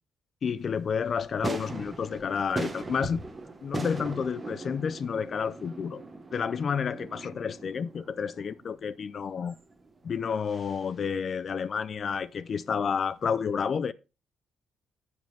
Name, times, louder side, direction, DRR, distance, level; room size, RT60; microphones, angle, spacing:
voice 1, 0.4-3.2 3.6-6.0 6.3-9.6 10.0-13.9, left 6 dB, 40° left, 0.4 m, -30 dB
sound 1, 0.6-12.7 13.1-13.2, right 3 dB, 20° right, 1.2 m, -40 dB
14.5 x 5.3 x 3.4 m
cardioid pair, 135°, 0 cm